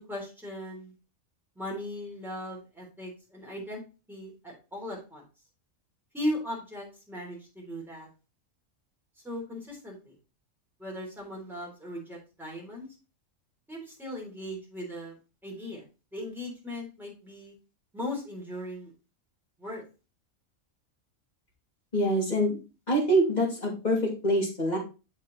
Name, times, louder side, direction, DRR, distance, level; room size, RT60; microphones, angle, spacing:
voice 1, 0.1-0.9 1.6-3.8 4.1-5.2 6.1-8.1 9.2-10.1 10.8-12.9 13.7-15.2 15.4-15.8 16.1-17.5 17.9-18.9 19.6-19.8, left 1 dB, ahead, -3 dB, 3.5 m, -38 dB
voice 2, 21.9-22.6 22.9-24.8, right 1 dB, 30° left, -2 dB, 2.8 m, -25 dB
7.2 x 5.3 x 4.0 m, 0.31 s
omnidirectional pair, 1.4 m